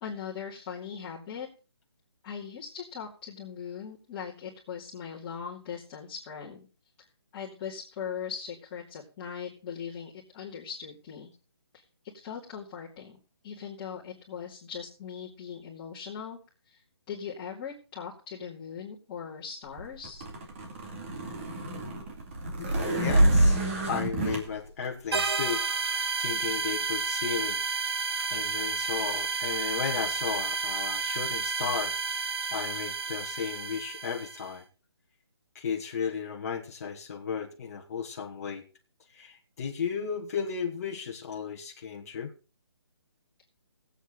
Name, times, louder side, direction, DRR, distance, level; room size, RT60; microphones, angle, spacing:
voice 1, 0.0-1.5 2.2-6.7 7.3-11.3 12.1-16.4 16.7-16.8 17.1-20.2, left 7 dB, 20° left, -8 dB, 2.7 m, -40 dB
sound 1, 19.8-24.4, right 1 dB, 30° right, 2.3 m, -26 dB
voice 2, 22.6-23.6 23.9-25.6 25.9-27.6 28.3-31.9 32.5-34.6 35.5-38.6 39.1-42.3, left 6 dB, 35° left, 0 dB, 1.5 m, -34 dB
sound 2, 25.1-34.5, right 5 dB, 65° right, 1.5 m, -31 dB
19.5 x 8.4 x 3.8 m, 0.34 s
hypercardioid pair, 165°, 14 cm